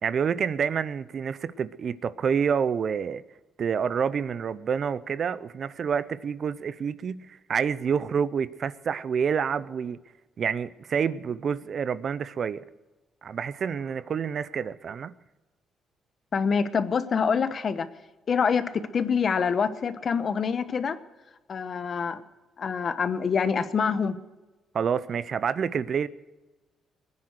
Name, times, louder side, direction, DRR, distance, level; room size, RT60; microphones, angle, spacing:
voice 1, 0.0-3.2 3.6-10.0 10.4-12.6 13.2-15.1 24.7-26.1, right 7 dB, 55° right, 0.7 m, -28 dB
voice 2, 16.3-17.9 18.3-21.0 21.5-22.2 22.6-24.1, left 6 dB, 50° left, 1.1 m, -26 dB
21.5 x 9.8 x 6.6 m
cardioid pair, 90°, 0 cm